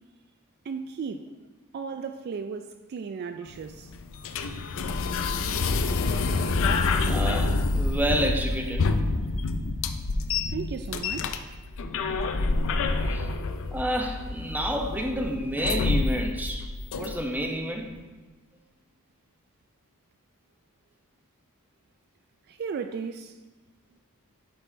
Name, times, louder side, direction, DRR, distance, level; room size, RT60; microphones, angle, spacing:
voice 1, 0.7-1.3 1.7-3.9 10.5-11.4 22.5-23.4, right 5 dB, 45° right, 0.3 m, -35 dB
sound 1, 3.5-17.5, left 3 dB, 60° left, 0.5 m, -27 dB
voice 2, 7.1-8.9 13.1-13.3 13.7-16.7 17.0-17.9, equal, 10° right, 0.7 m, -29 dB
12.0 x 5.6 x 2.7 m
head